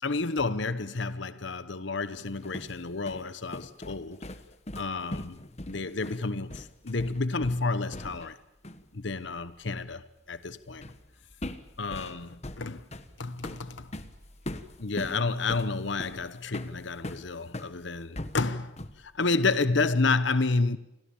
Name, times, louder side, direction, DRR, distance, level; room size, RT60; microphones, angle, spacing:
voice 1, 0.0-4.2 4.7-5.4 5.7-8.4 8.9-10.9 11.8-12.8 13.2-13.9 14.8-20.8, left 3 dB, 65° left, 1.0 m, -30 dB
sound 1, 2.2-8.4 8.6-8.9 10.8-11.1 11.4-17.7 18.1-19.1, left 1 dB, 35° left, 1.3 m, -40 dB
sound 2, 6.4-19.4, equal, 40° right, 6.2 m, -62 dB
30.0 x 23.0 x 7.2 m
head